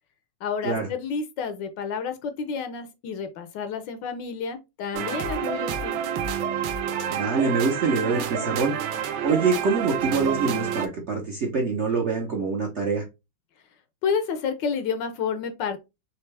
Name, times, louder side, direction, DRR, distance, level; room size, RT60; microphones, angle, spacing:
voice 1, 0.4-6.0 14.0-15.8, left 6 dB, 70° left, 1.3 m, -30 dB
sound 1, 4.9-10.9, right 8 dB, 85° right, 1.5 m, -28 dB
voice 2, 7.1-8.8 9.2-13.1, right 4 dB, 50° right, 0.8 m, -25 dB
4.4 x 3.2 x 3.3 m
omnidirectional pair, 2.2 m